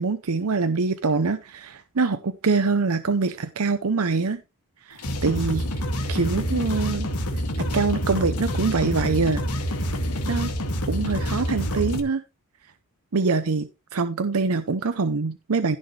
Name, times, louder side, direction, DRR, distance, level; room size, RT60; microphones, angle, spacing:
voice 1, 0.0-4.4 4.8-7.1 7.3-9.4 10.3-10.5 10.9-12.2 13.1-15.8, right 4 dB, 75° right, 0.7 m, -24 dB
sound 1, 4.9-12.0, equal, 90° left, 2.3 m, -27 dB
15.5 x 6.4 x 3.3 m
head